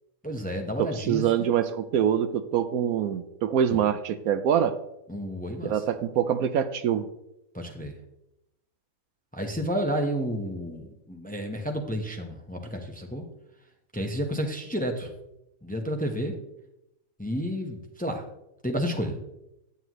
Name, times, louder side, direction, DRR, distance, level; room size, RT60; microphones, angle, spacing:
voice 1, 0.2-1.5 3.7-3.8 5.1-5.8 7.5-7.9 9.3-13.2 13.9-15.1 15.6-16.3 17.2-18.2 18.6-19.2, equal, 5° left, 3 dB, 0.8 m, -31 dB
voice 2, 0.8-4.7 5.6-7.0, right 9 dB, 75° right, 11 dB, 1.0 m, -25 dB
9.7 x 9.4 x 3.1 m, 0.86 s
omnidirectional pair, 1.6 m